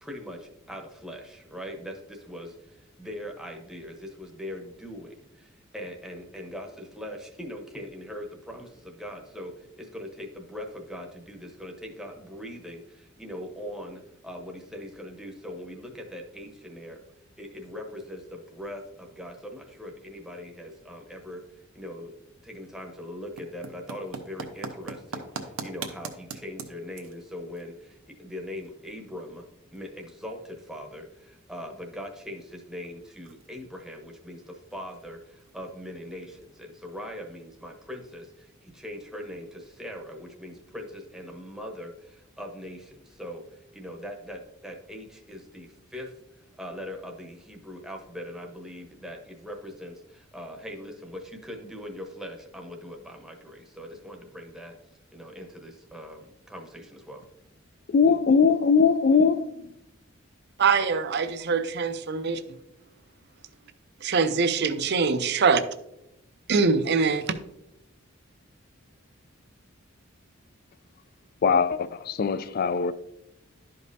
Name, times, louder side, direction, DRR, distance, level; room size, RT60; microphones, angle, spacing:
voice 1, 0.0-17.0 17.4-21.4 21.7-22.1 22.4-54.7 55.1-57.2, left 1 dB, ahead, 0.9 m, -41 dB
sound 1, 23.1-37.4, right 4 dB, 80° right, 0.9 m, -45 dB
voice 2, 57.9-59.5 71.4-72.9, left 5 dB, 45° left, 0.3 m, -21 dB
voice 3, 60.6-62.6 64.0-65.6 66.5-67.3, right 5 dB, 55° right, 0.6 m, -23 dB
11.5 x 5.2 x 2.7 m
head